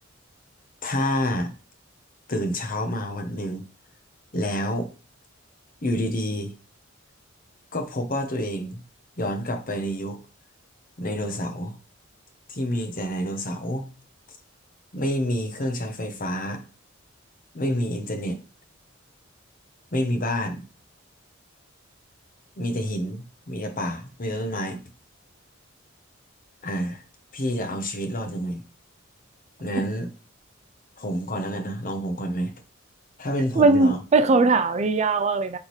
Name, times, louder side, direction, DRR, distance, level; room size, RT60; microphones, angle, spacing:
voice 1, 0.8-1.5 2.3-3.6 4.3-4.9 5.8-6.5 7.7-8.8 9.2-10.2 11.0-11.8 12.5-13.9 14.9-16.6 17.5-18.4 19.9-20.6 22.6-24.8 26.6-27.0 27.3-28.6 29.6-30.1 31.0-32.5 33.2-34.0, equal, 45° left, 1.0 m, -28 dB
voice 2, 33.6-35.6, right 3 dB, 35° right, 0.4 m, -19 dB
8.1 x 3.7 x 3.1 m
head